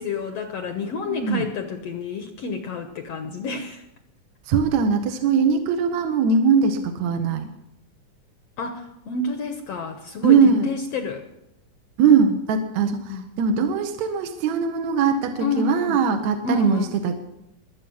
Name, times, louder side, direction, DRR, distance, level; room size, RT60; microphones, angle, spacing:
voice 1, 0.0-3.8 8.6-11.3 13.1-13.2 15.4-16.0 16.4-17.0, left 3 dB, 65° left, 6 dB, 1.7 m, -29 dB
voice 2, 0.8-1.5 4.5-7.5 10.2-10.7 12.0-17.2, right 5 dB, 65° right, 6 dB, 2.1 m, -21 dB
22.5 x 8.3 x 6.2 m, 0.83 s
omnidirectional pair, 3.8 m